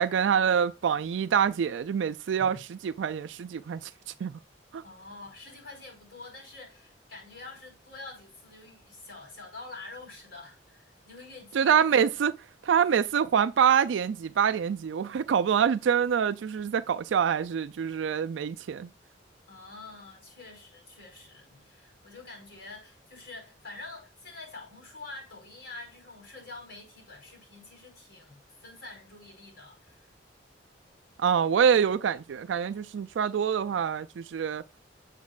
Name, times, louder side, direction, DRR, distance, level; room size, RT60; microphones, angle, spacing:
voice 1, 0.0-2.6 2.8-3.9 4.2-4.3 4.7-4.8 11.5-12.3 12.6-18.9 31.2-34.6, right 7 dB, 85° right, 0.4 m, -25 dB
voice 2, 4.8-11.9 19.5-30.1, left 3 dB, 75° left, 4.9 m, -46 dB
7.3 x 7.2 x 2.4 m
head